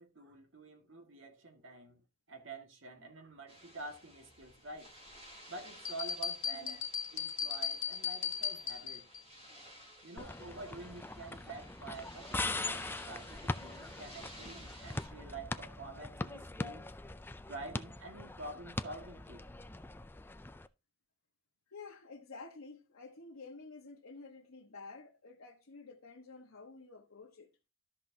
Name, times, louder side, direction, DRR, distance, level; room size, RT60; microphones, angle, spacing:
voice 1, 0.0-2.0 2.3-4.9 5.5-9.1 10.0-16.9 17.5-19.4, right 3 dB, 65° right, 1.8 m, -48 dB
sound 1, 3.5-15.1, equal, 30° right, 3.5 m, -55 dB
sound 2, 5.8-9.2, left 7 dB, 60° left, 1.4 m, -37 dB
sound 3, 10.2-20.7, left 2 dB, 10° left, 0.4 m, -41 dB
voice 2, 21.7-27.5, left 3 dB, 85° left, 1.3 m, -51 dB
13.5 x 5.9 x 2.7 m
head